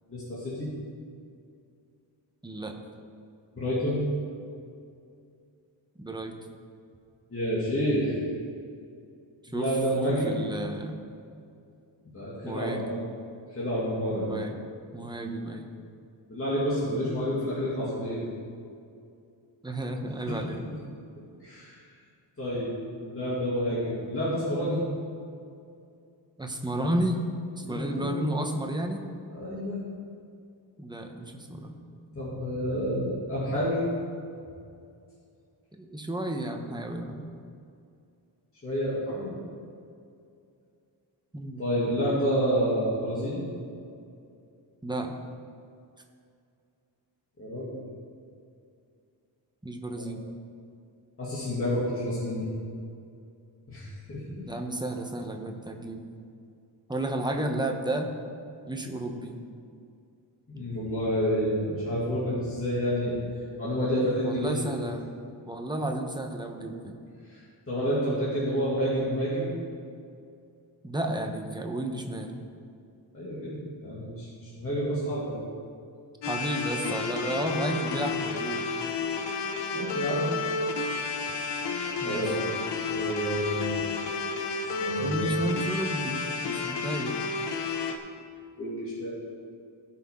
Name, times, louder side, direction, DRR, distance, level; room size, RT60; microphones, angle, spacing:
voice 1, 0.1-0.7 3.5-4.0 7.3-8.2 9.5-10.4 12.1-13.0 13.5-14.3 16.3-18.2 21.2-21.8 22.4-24.8 27.6-28.2 29.3-29.8 32.1-33.8 38.6-39.3 41.6-43.4 47.4-47.8 49.9-50.1 51.2-52.5 53.7-54.2 60.5-63.2 63.6-64.5 67.3-67.4 67.7-69.5 73.1-75.4 79.7-80.3 82.0-82.4 82.9-83.7 84.6-85.3 88.6-89.1, equal, 30° left, -10 dB, 2.5 m, -29 dB
voice 2, 2.4-2.7 6.0-6.4 9.5-9.7 10.1-10.9 12.4-12.8 14.3-14.6 14.9-15.7 19.6-20.6 26.4-27.2 27.6-29.0 30.8-31.7 35.8-37.2 41.3-41.7 44.8-45.1 49.6-50.2 54.4-56.0 56.9-58.1 58.7-59.4 64.2-65.0 65.5-67.0 70.8-72.3 76.3-78.7 82.0-82.2 85.0-86.1 86.4-87.1, right 1 dB, 10° right, 2 dB, 1.0 m, -32 dB
sound 1, 76.2-88.0, left 4 dB, 70° left, 0.9 m, -31 dB
17.0 x 6.0 x 3.7 m, 2.4 s
wide cardioid pair, 125°, 44 cm